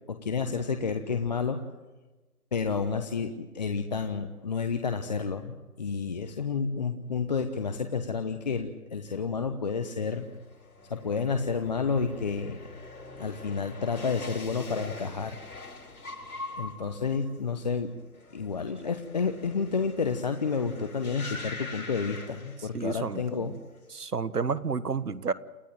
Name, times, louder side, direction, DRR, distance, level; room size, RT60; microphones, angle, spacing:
voice 1, 0.1-1.6 2.5-10.3 10.9-12.6 13.2-15.4 16.5-17.9 18.3-23.5, left 5 dB, 30° left, 7 dB, 1.0 m, -30 dB
sound 1, 10.0-23.1 23.4-24.0, left 2 dB, 70° left, 7.8 m, -44 dB
voice 2, 22.7-23.6 23.9-25.3, right 5 dB, 85° right, 15 dB, 1.5 m, -31 dB
29.0 x 14.5 x 9.1 m, 1.2 s
figure-of-eight pair, 160°, 45 cm